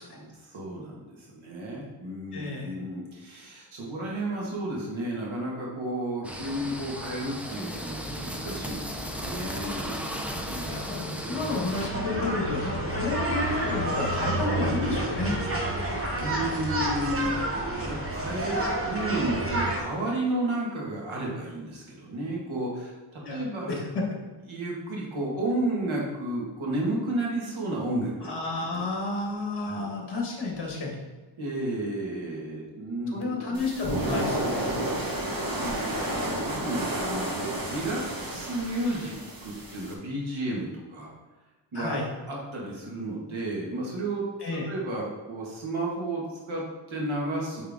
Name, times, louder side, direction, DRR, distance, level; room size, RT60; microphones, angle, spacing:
voice 1, 0.1-10.9 16.1-17.4 17.8-23.8 24.5-28.4 28.7-28.8 29.7-29.9 31.4-33.9 35.4-39.1 39.4-41.1 41.7-42.0 42.3-44.3 44.7-47.7, right 1 dB, 70° right, -4 dB, 1.9 m, -32 dB
voice 2, 2.3-2.7 10.6-15.4 23.2-24.2 28.2-31.0 33.1-34.7 41.7-42.1 44.4-44.7, left 3 dB, 55° left, -1 dB, 1.6 m, -31 dB
sound 1, 6.2-11.9, equal, 5° right, 0.5 m, -35 dB
sound 2, 11.7-19.8, right 1 dB, 25° right, 1.1 m, -29 dB
sound 3, 33.5-39.9, right 1 dB, 45° right, 1.4 m, -31 dB
8.9 x 3.6 x 3.6 m, 1.3 s
wide cardioid pair, 155°, 49 cm